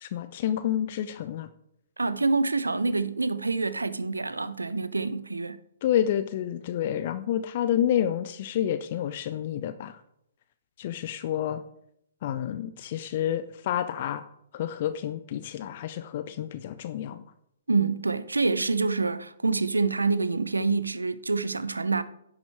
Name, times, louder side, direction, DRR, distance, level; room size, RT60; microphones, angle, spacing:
voice 1, 0.0-1.5 5.8-10.0 10.8-11.6 12.2-14.2 14.5-17.2, left 10 dB, 40° left, 0.6 m, -29 dB
voice 2, 2.0-5.6 17.7-22.0, right 3 dB, 75° right, 0.7 m, -26 dB
10.5 x 7.3 x 4.6 m
figure-of-eight pair, 125°, 0 cm